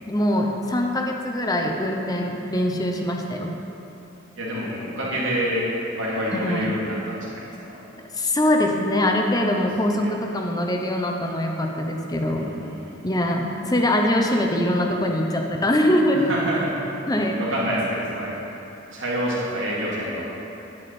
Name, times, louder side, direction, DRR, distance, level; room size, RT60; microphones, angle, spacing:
voice 1, 0.1-3.5 6.3-6.7 8.1-12.5 13.0-16.3 17.1-17.4, left 1 dB, 20° left, 2 dB, 0.8 m, -23 dB
voice 2, 4.4-7.8 9.6-9.7 10.0-10.1 12.3-13.0 16.1-16.8 17.4-18.3 18.9-20.2, equal, 85° right, -6 dB, 2.7 m, -27 dB
10.0 x 9.7 x 4.3 m, 3.0 s
head